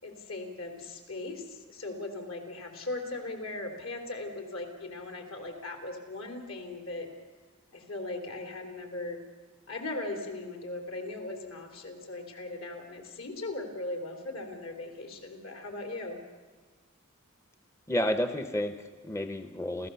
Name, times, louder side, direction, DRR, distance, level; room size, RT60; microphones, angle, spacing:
voice 1, 0.0-7.1 7.7-9.2 9.7-16.2, left 2 dB, 70° left, 4 dB, 3.6 m, -38 dB
voice 2, 17.9-19.9, left 1 dB, 15° left, 8 dB, 0.7 m, -31 dB
29.0 x 14.5 x 7.0 m, 1.4 s
head